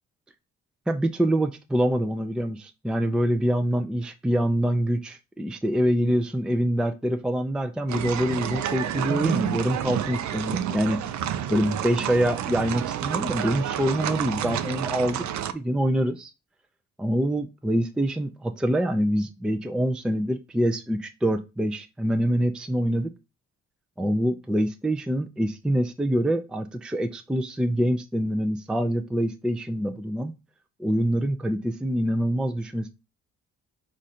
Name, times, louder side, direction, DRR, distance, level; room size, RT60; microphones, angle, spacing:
voice 1, 0.9-11.0 11.5-15.2 15.5-16.3 17.0-23.1 24.0-30.3 30.8-32.9, equal, 5° right, 7 dB, 0.4 m, -25 dB
sound 1, 7.9-15.5, right 10 dB, 65° right, 0.5 m, -29 dB
4.9 x 2.5 x 4.2 m, 0.27 s
cardioid pair, 90°, 30 cm